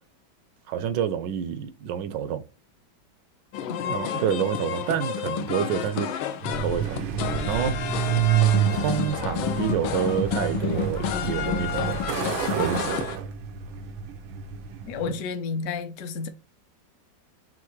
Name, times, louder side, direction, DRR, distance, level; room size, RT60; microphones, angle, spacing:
voice 1, 0.7-2.4 3.9-6.1 6.6-7.0 7.4-7.7 8.7-12.0 12.6-12.9 15.1-15.2, right 9 dB, 75° right, 1.2 m, -28 dB
sound 1, 3.5-13.2, left 9 dB, 85° left, 1.4 m, -30 dB
voice 2, 3.7-4.2 14.8-16.3, left 5 dB, 65° left, 0.7 m, -32 dB
Truck, 6.4-15.2, right 10 dB, 90° right, 1.5 m, -28 dB
5.8 x 2.5 x 3.1 m
omnidirectional pair, 2.1 m